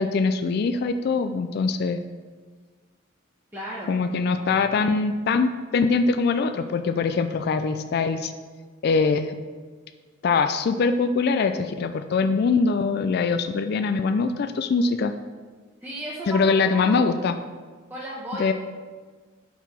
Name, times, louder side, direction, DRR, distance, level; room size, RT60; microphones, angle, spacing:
voice 1, 0.0-2.0 3.9-8.3 8.8-9.4 10.2-15.1 16.3-17.3 18.4-18.5, left 4 dB, 50° left, 9 dB, 0.3 m, -23 dB
voice 2, 3.5-4.5 15.8-17.2 17.9-18.5, right 1 dB, 10° right, -7 dB, 0.9 m, -35 dB
5.5 x 4.7 x 5.7 m, 1.5 s
head